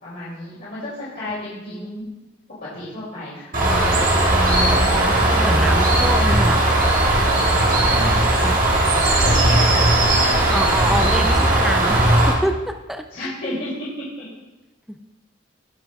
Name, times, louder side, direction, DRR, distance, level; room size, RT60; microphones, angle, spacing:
voice 1, 0.0-2.1 2.6-3.5 4.7-5.1 7.8-8.7 8.9-11.4 13.1-14.3, left 1 dB, 45° left, -10 dB, 2.7 m, -32 dB
Bird, 3.5-12.3, right 1 dB, 40° right, 1.5 m, -17 dB
voice 2, 4.3-6.6 8.4-8.6 10.5-13.3 14.9-15.1, equal, ahead, 5 dB, 0.4 m, -27 dB
17.5 x 6.2 x 2.4 m, 1.1 s
head